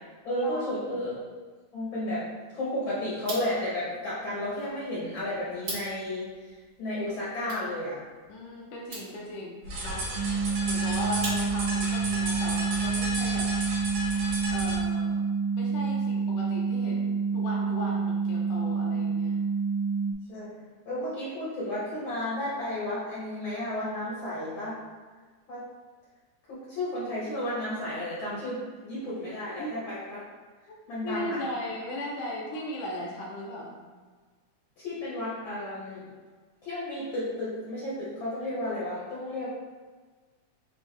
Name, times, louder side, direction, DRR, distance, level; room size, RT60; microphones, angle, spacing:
voice 1, 0.2-1.4 1.7-2.2 2.5-8.0 20.3-20.5 20.8-24.8 25.5-25.6 26.5-30.2 30.9-31.4 34.8-36.1 36.6-39.5, left 1 dB, 60° left, -8 dB, 1.3 m, -33 dB
sound 1, 3.1-11.8, right 2 dB, 50° right, 2.2 m, -44 dB
voice 2, 8.3-10.0 10.6-13.5 14.5-15.2 15.5-19.4 29.6-29.7 30.7-30.8 31.0-33.8, left 1 dB, 80° left, -3 dB, 1.3 m, -37 dB
sound 2, 9.6-14.8, equal, 65° right, 2.5 m, -33 dB
sound 3, 10.2-20.1, right 5 dB, 85° right, 1.4 m, -28 dB
6.0 x 2.7 x 3.3 m, 1.4 s
omnidirectional pair, 3.5 m